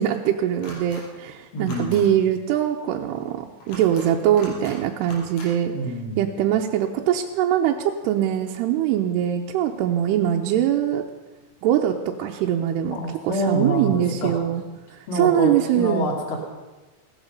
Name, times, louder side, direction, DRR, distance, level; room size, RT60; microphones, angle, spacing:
voice 1, 0.0-5.7 6.2-11.0 11.6-13.0 13.2-14.6 14.9-16.1, right 10 dB, 80° right, 1 dB, 2.7 m, -22 dB
sound 1, 0.6-1.0 1.6-2.0 3.6-4.1 4.4-4.8 5.0-5.5, left 2 dB, 85° left, 6.3 m, -40 dB
voice 2, 1.5-2.1 5.7-6.2 12.9-14.4 15.1-16.4, right 1 dB, 35° left, 1 dB, 2.7 m, -26 dB
17.0 x 13.5 x 5.3 m, 1.1 s
omnidirectional pair, 5.1 m